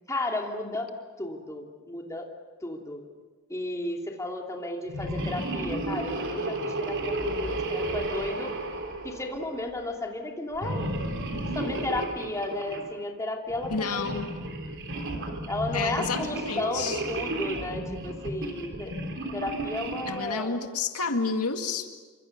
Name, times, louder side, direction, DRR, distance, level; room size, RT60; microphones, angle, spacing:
voice 1, 0.1-0.9 1.2-2.3 2.6-3.0 3.5-8.5 9.0-10.8 11.5-14.3 15.5-18.9 19.3-20.6, left 2 dB, 15° left, 1 dB, 2.9 m, -33 dB
sound 1, 4.8-9.7 10.5-12.9 13.5-20.3, right 2 dB, 55° right, 3.5 m, -33 dB
voice 2, 13.7-14.3 15.7-17.0 20.1-22.0, left 4 dB, 85° left, 5 dB, 2.1 m, -30 dB
27.5 x 25.5 x 6.8 m, 1.4 s
head